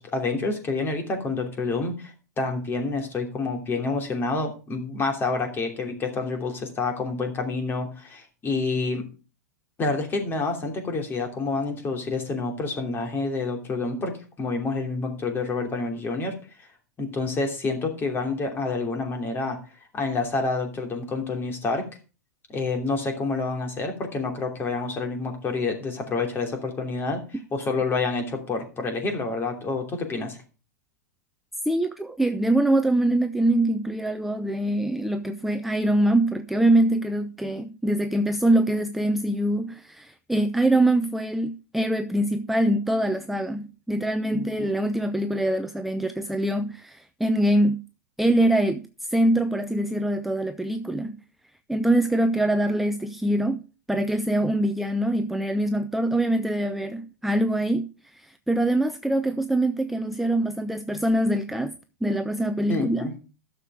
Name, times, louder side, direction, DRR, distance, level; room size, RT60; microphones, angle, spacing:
voice 1, 0.0-2.1 2.4-9.0 9.8-14.1 14.4-16.3 17.0-19.6 19.9-21.8 22.5-30.4 44.3-44.7 54.4-54.5 62.7-63.1, left 3 dB, 25° left, 3.0 m, -28 dB
voice 2, 31.7-47.8 48.2-48.8 49.1-51.1 51.7-53.6 53.9-61.7 62.0-63.0, right 1 dB, ahead, 0.6 m, -24 dB
11.5 x 6.9 x 4.8 m
hypercardioid pair, 110°, 9 cm